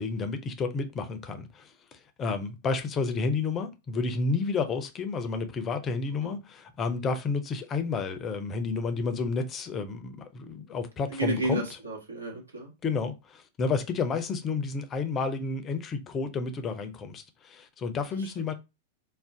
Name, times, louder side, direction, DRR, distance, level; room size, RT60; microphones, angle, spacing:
voice 1, 0.0-11.6 12.8-18.5, left 4 dB, 25° left, 0.4 m, -31 dB
voice 2, 11.1-12.7 18.2-18.5, right 2 dB, 80° right, 1.1 m, -32 dB
2.4 x 2.0 x 3.7 m
figure-of-eight pair, 95°, 0 cm